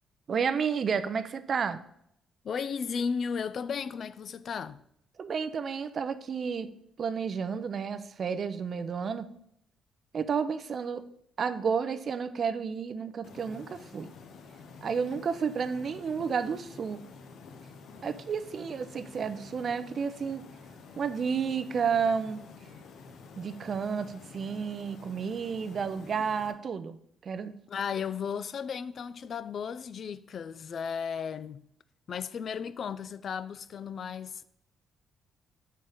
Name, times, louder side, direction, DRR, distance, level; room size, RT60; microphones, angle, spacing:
voice 1, 0.3-1.8 5.2-6.7 7.0-9.3 10.1-11.0 11.4-14.1 14.8-17.0 18.0-20.4 21.0-22.4 23.4-27.0 27.2-27.5, right 6 dB, 50° right, 0.5 m, -31 dB
voice 2, 2.4-4.8 27.7-31.6 32.1-34.4, left 6 dB, 55° left, 0.3 m, -35 dB
sound 1, 13.2-26.5, left 4 dB, 75° left, 0.7 m, -49 dB
5.2 x 4.4 x 4.8 m
cardioid pair, 90°, 0 cm